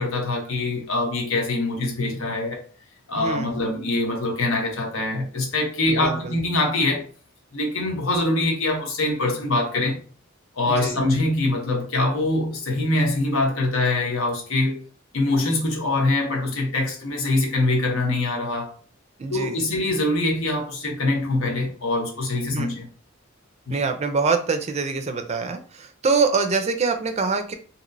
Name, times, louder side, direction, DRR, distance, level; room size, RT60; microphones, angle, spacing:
voice 1, 0.0-2.6 3.1-7.1 7.5-10.0 10.5-14.8 15.1-18.7 19.3-22.9 23.7-23.8, left 2 dB, 90° left, 0.9 m, -24 dB
voice 2, 3.1-3.6 5.9-6.4 10.7-11.0 19.2-19.8 22.5-22.8 23.7-27.5, right 4 dB, 35° right, 0.4 m, -25 dB
3.0 x 2.8 x 2.6 m
head